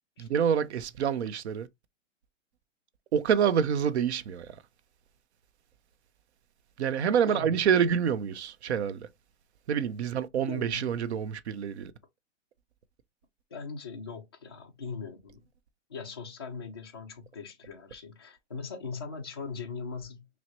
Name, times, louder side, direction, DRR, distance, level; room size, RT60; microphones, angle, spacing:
voice 1, 0.2-1.7 3.1-4.6 6.8-9.1 9.7-11.9, right 8 dB, 60° right, 0.6 m, -27 dB
voice 2, 10.5-11.1 13.5-15.4 15.9-20.3, left 5 dB, 20° left, 0.4 m, -40 dB
6.0 x 2.0 x 2.9 m
hypercardioid pair, 160°, 38 cm